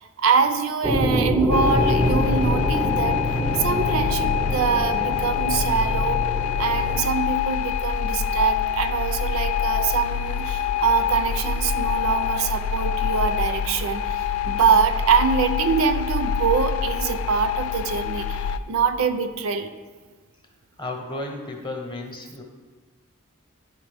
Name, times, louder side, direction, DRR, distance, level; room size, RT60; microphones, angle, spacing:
voice 1, 0.0-3.2 3.6-6.2 6.6-19.7, right 6 dB, 70° right, 9 dB, 0.4 m, -24 dB
sound 1, 0.8-7.0, equal, ahead, 0.4 m, -25 dB
sound 2, 1.5-18.6, left 8 dB, 75° left, 0.3 m, -26 dB
voice 2, 20.8-22.4, left 2 dB, 20° left, 2 dB, 0.8 m, -33 dB
10.5 x 3.8 x 3.4 m, 1.4 s
head